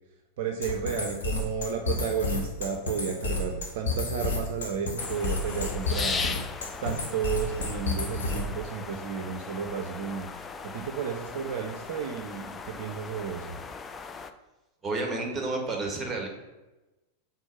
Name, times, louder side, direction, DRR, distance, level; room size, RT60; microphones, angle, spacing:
voice 1, 0.4-6.2 6.8-10.3 10.7-13.6, right 7 dB, 50° right, 4 dB, 0.5 m, -32 dB
sound 1, 0.6-8.6, left 3 dB, 65° left, 1.1 m, -31 dB
sound 2, 5.0-14.3, left 5 dB, 20° left, 0.4 m, -38 dB
voice 2, 14.8-16.3, right 3 dB, 10° right, 1 dB, 1.4 m, -30 dB
4.4 x 3.8 x 5.6 m, 1.1 s
figure-of-eight pair, 90°, 0 cm